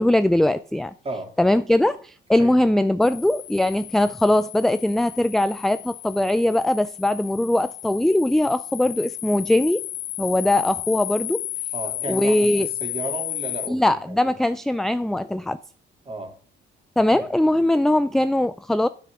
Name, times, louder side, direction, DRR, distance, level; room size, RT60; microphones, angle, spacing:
voice 1, 0.0-0.9 1.4-9.8 10.2-11.4 12.1-12.7 13.7-15.6 17.0-18.9, left 1 dB, ahead, 0.4 m, -21 dB
sound 1, 3.0-13.7, left 14 dB, 80° left, 0.6 m, -33 dB
voice 2, 11.7-14.2 16.0-16.3 17.1-17.2, right 2 dB, 30° right, 2.9 m, -34 dB
9.8 x 8.7 x 3.7 m
cardioid pair, 90°, 20 cm